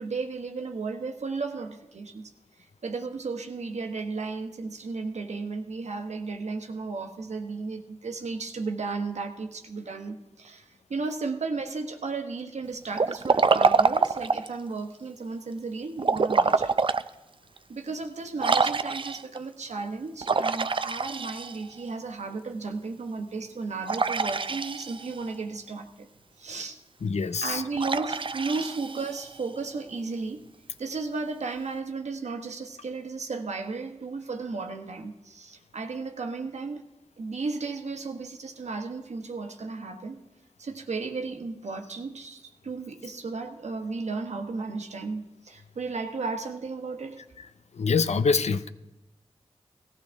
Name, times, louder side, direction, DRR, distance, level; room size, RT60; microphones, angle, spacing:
voice 1, 0.0-2.3 2.6-16.7 17.7-26.1 26.4-26.8 27.4-30.4 30.8-36.8 37.2-40.2 40.6-47.2, right 4 dB, 80° right, 5 dB, 1.2 m, -34 dB
Liquid, 12.9-14.6 16.0-17.1 17.6-17.7 18.4-19.4 20.2-21.8 23.9-25.2 27.8-29.4, right 4 dB, 50° right, 0.5 m, -25 dB
voice 2, 27.0-27.6 47.4-47.5 47.7-48.7, left 5 dB, 75° left, 12 dB, 0.6 m, -25 dB
17.5 x 14.5 x 3.5 m, 0.96 s
cardioid pair, 40°, 11 cm